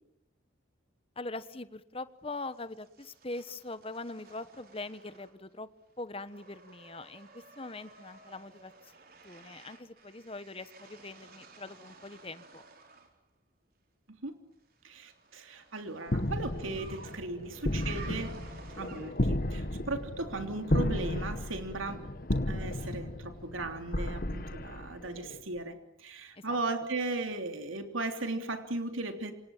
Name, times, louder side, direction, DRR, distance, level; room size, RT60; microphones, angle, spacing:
voice 1, 1.2-5.7 6.0-8.9 9.2-12.6 26.3-26.6, left 2 dB, 30° left, 13 dB, 1.2 m, -42 dB
sound 1, 2.5-5.6 5.9-13.1 14.7-19.4, right 4 dB, 45° right, 3.9 m, -54 dB
voice 2, 14.8-18.3 18.7-22.0 22.3-29.3, right 2 dB, 90° right, 6 dB, 3.3 m, -37 dB
sound 2, 16.1-25.4, left 1 dB, 45° left, 1.4 m, -33 dB
28.0 x 26.5 x 7.4 m, 0.83 s
head